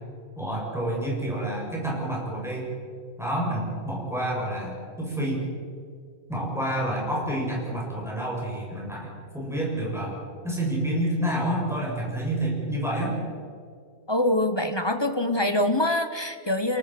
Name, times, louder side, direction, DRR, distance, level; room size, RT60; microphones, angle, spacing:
voice 1, 0.4-2.7 3.2-5.4 6.3-9.1 9.3-10.1 10.4-13.2, right 1 dB, ahead, -4 dB, 7.5 m, -28 dB
voice 2, 14.1-16.8, left 1 dB, 20° left, 8 dB, 1.1 m, -24 dB
29.0 x 19.0 x 6.1 m, 2.2 s
omnidirectional pair, 1.5 m